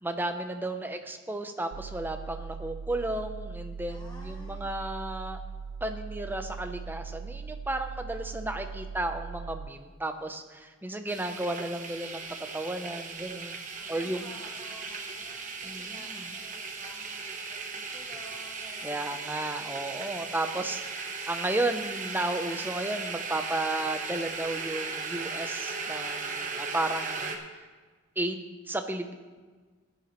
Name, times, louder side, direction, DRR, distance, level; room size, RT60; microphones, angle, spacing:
voice 1, 0.0-5.4 5.8-12.2 12.5-13.6 13.9-14.3 15.6-16.3 18.8-27.6 28.2-29.1, right 2 dB, 10° right, 6 dB, 0.7 m, -33 dB
sound 1, 1.7-9.7, right 5 dB, 90° right, 0.3 m, -40 dB
voice 2, 3.9-4.7 13.8-19.2, left 1 dB, 20° left, -2 dB, 1.0 m, -51 dB
sound 2, 11.1-27.4, right 4 dB, 40° right, 1.1 m, -37 dB
16.5 x 10.5 x 3.1 m, 1.4 s
head